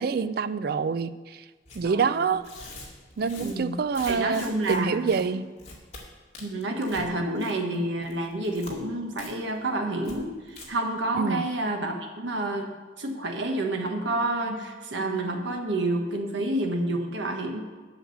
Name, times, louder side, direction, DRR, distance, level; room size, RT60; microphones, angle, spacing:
voice 1, 0.0-1.4 1.8-2.4 3.2-5.4 11.1-11.4, right 5 dB, 55° right, 14 dB, 0.4 m, -26 dB
Tearing, 1.7-1.8 2.4-4.8 5.1-5.2 5.6-6.0 6.3-7.1 7.4-7.7 8.0-8.7 9.2-9.3 9.6-9.7 10.0-10.2 10.5-10.7, left 3 dB, 35° left, 2.2 m, -44 dB
voice 2, 1.8-2.2 3.4-3.8 4.1-5.2 6.4-12.7 13.0-17.6, right 1 dB, 80° right, 2 dB, 1.3 m, -29 dB
8.0 x 6.5 x 7.8 m, 1.4 s
head